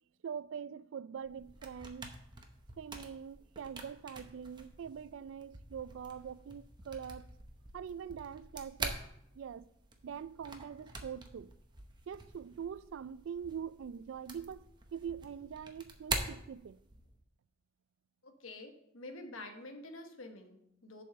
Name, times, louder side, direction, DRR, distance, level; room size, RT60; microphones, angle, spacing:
voice 1, 0.2-2.1 2.8-7.3 7.7-9.0 9.3-9.7 10.0-11.5 12.1-14.6 14.9-16.8, right 7 dB, 65° right, 0.3 m, -43 dB
sound 1, 1.2-17.2, right 3 dB, 20° right, 0.8 m, -45 dB
voice 2, 18.2-21.0, left 2 dB, 80° left, 1.2 m, -48 dB
7.2 x 5.4 x 6.7 m
head